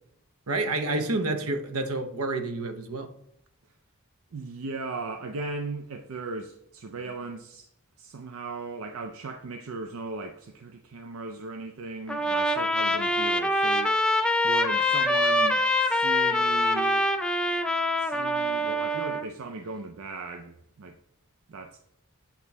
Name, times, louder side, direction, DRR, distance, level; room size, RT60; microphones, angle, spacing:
voice 1, 0.5-3.1, right 2 dB, 85° right, 0.8 m, -29 dB
voice 2, 4.3-7.7 8.0-14.0 14.4-17.2 18.0-21.0 21.5-21.8, right 3 dB, 65° right, 0.5 m, -37 dB
Trumpet, 12.1-19.3, left 1 dB, 5° left, 0.3 m, -24 dB
8.1 x 2.9 x 4.1 m
head